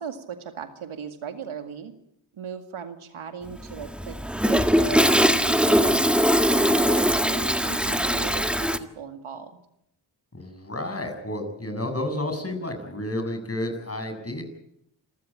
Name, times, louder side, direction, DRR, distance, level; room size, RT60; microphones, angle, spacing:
voice 1, 0.0-1.9 2.3-4.1 4.4-6.0 6.5-9.5, right 7 dB, 80° right, 8 dB, 2.2 m, -37 dB
Toilet flush, 3.5-8.8, equal, ahead, 1.7 m, -21 dB
voice 2, 10.3-14.4, left 1 dB, 30° left, 6 dB, 7.4 m, -31 dB
27.0 x 14.5 x 8.9 m, 0.76 s
supercardioid pair, 40°, 49 cm